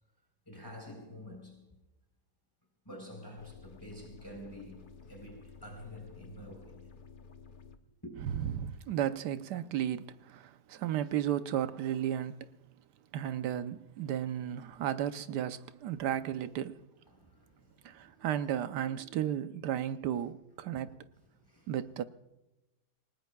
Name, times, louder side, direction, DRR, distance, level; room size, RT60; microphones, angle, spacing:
voice 1, 0.5-1.6 2.8-6.9 8.0-8.1 17.1-18.3 20.7-20.8 21.3-21.7, left 1 dB, 15° left, 4.0 m, -49 dB
sound 1, 3.4-7.8, left 5 dB, 40° left, 0.8 m, -53 dB
voice 2, 8.5-12.5 13.1-16.8 17.8-21.0 21.7-22.0, right 10 dB, 85° right, 1.3 m, -34 dB
28.5 x 18.5 x 2.3 m
omnidirectional pair, 1.7 m